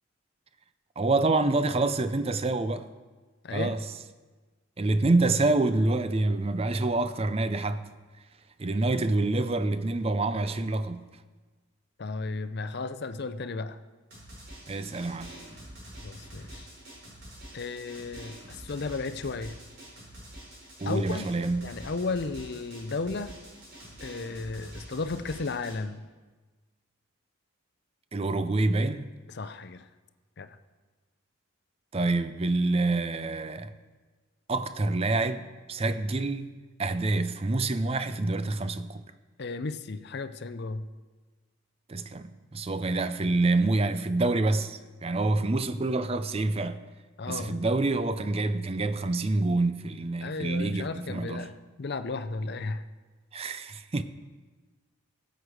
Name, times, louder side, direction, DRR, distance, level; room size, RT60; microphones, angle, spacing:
voice 1, 1.0-2.9 3.5-3.8 4.8-7.8 8.6-11.1 14.7-15.4 20.8-21.7 28.1-29.0 31.9-33.7 34.5-39.0 41.9-46.8 47.3-51.5 53.3-54.0, right 2 dB, 25° right, 0.5 m, -27 dB
voice 2, 3.4-3.8 12.0-13.8 16.0-16.7 17.5-19.6 20.9-21.3 21.6-23.3 24.0-26.1 29.3-29.9 30.4-30.5 39.4-40.9 47.2-47.6 50.2-52.8, left 3 dB, 50° left, 0.5 m, -34 dB
Drum, 14.1-25.7, right 1 dB, 45° right, 4.7 m, -46 dB
16.0 x 8.0 x 4.8 m
head